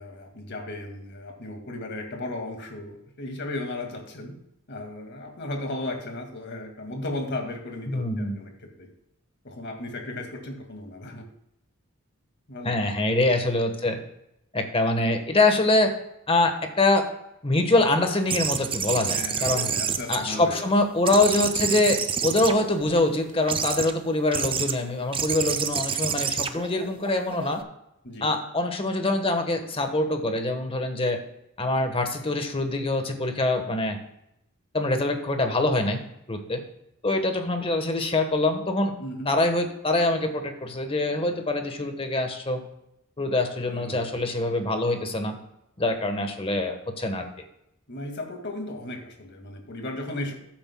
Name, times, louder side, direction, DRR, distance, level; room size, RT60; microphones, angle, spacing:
voice 1, 0.0-4.4 4.7-8.9 9.4-11.2 12.5-12.8 19.1-20.6 28.0-28.3 39.0-39.3 43.6-44.1 47.9-50.3, left 2 dB, 55° left, 3 dB, 2.1 m, -35 dB
voice 2, 7.9-8.4 12.6-14.0 14.5-15.9 16.3-17.1 17.4-19.7 20.1-27.6 28.2-31.2 31.6-34.0 34.7-36.0 36.3-36.6 37.0-38.9 39.3-42.6 43.2-45.4 45.8-47.3, left 2 dB, 25° left, 6 dB, 1.2 m, -24 dB
sound 1, 18.3-20.7 21.0-23.0 23.5-23.9 24.3-24.7 25.1-27.6, right 7 dB, 25° right, 0.6 m, -28 dB
14.0 x 8.8 x 2.3 m, 0.80 s
head